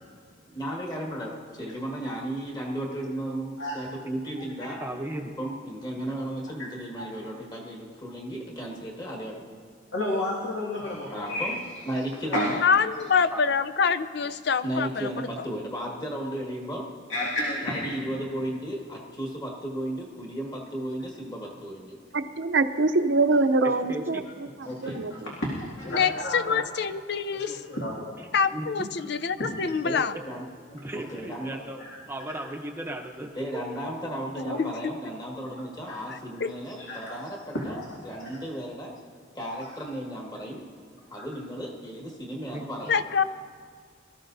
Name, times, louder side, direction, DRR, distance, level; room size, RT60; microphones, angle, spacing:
voice 1, 0.5-1.3 1.6-4.8 5.2-9.4 11.1-11.6 11.9-12.6 14.6-16.9 17.6-22.0 24.6-25.0 29.8-30.4 30.9-31.6 33.3-37.8 38.0-38.9 39.3-40.6 41.1-43.0, right 1 dB, 20° left, -2 dB, 1.7 m, -34 dB
voice 2, 4.8-5.3 13.3-13.4 23.9-24.2 28.5-28.9 30.8-31.8 32.1-33.3 42.5-42.7, right 1 dB, 15° right, 2 dB, 0.7 m, -36 dB
voice 3, 9.9-11.5 12.3-12.5 17.1-17.9 24.8-25.0 25.4-26.6 27.5-28.1 29.4-29.5 31.9-32.0 32.3-32.4 34.4-34.6 35.8-36.0 36.8-37.0 37.5-37.9 38.2-38.3 39.5-39.6 41.2-41.3, left 1 dB, 75° left, -5 dB, 2.1 m, -31 dB
voice 4, 12.6-15.3 25.9-27.5 28.3-30.1 34.5-34.9 36.4-36.5 42.9-43.2, left 6 dB, 60° left, 12 dB, 0.5 m, -25 dB
voice 5, 22.1-24.2 24.8-25.1, right 3 dB, 65° right, 9 dB, 0.6 m, -23 dB
23.0 x 13.5 x 2.7 m, 2.2 s
head